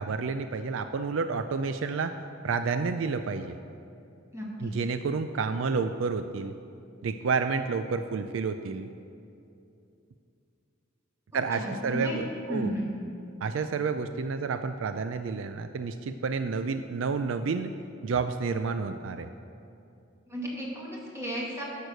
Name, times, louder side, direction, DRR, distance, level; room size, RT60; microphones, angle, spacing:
voice 1, 0.0-2.1 2.4-3.6 4.6-6.5 7.0-8.9 11.3-12.7 13.4-17.7 18.0-19.3, right 4 dB, 70° right, 9 dB, 0.4 m, -30 dB
voice 2, 4.3-4.7 11.5-12.2 12.5-12.9 14.1-14.2 20.3-21.6, equal, 15° right, -4 dB, 2.2 m, -34 dB
11.0 x 6.6 x 6.4 m, 2.7 s
head